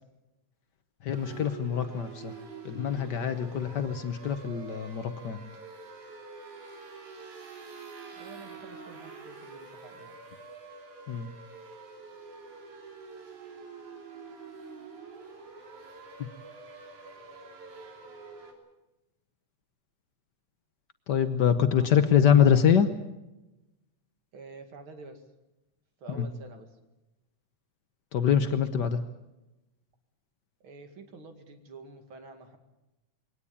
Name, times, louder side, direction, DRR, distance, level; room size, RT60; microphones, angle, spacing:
voice 1, 1.0-2.3 2.6-5.4 11.1-11.3 16.2-16.3 21.1-22.9 26.2-26.3 28.1-29.0, left 8 dB, 80° left, 9 dB, 0.9 m, -24 dB
sound 1, 1.1-18.5, right 4 dB, 85° right, 4.6 m, -46 dB
voice 2, 8.2-10.2 21.8-22.3 24.3-25.3 26.0-26.8 30.6-32.6, right 4 dB, 45° right, 6 dB, 2.8 m, -48 dB
22.0 x 18.5 x 8.6 m, 1.0 s
omnidirectional pair, 3.3 m